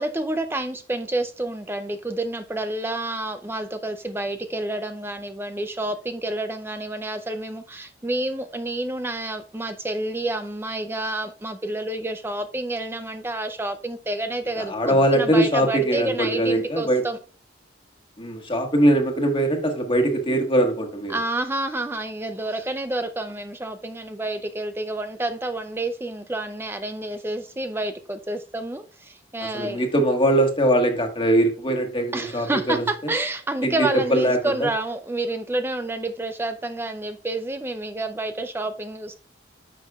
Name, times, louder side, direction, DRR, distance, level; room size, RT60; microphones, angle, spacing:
voice 1, 0.0-17.2 21.1-29.8 32.1-39.2, right 2 dB, 10° right, 0.4 m, -29 dB
voice 2, 14.6-17.0 18.2-21.2 29.4-33.1 33.6-34.7, right 1 dB, 30° left, 1.5 m, -21 dB
9.9 x 6.3 x 2.4 m
head